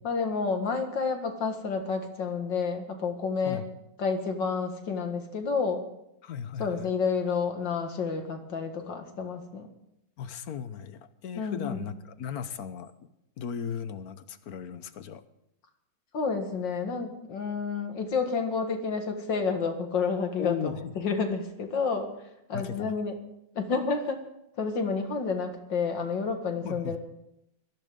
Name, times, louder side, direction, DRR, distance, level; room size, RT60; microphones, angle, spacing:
voice 1, 0.0-3.6 4.0-5.8 6.6-9.7 11.4-11.8 16.1-22.1 22.5-23.2 23.6-24.2 24.6-27.0, left 5 dB, 90° left, 5 dB, 2.5 m, -30 dB
voice 2, 6.2-6.9 10.2-12.9 13.4-15.2 20.4-20.9 22.5-22.9 26.6-27.0, left 8 dB, 60° left, 12 dB, 1.3 m, -36 dB
22.0 x 15.0 x 3.8 m, 0.83 s
omnidirectional pair, 1.9 m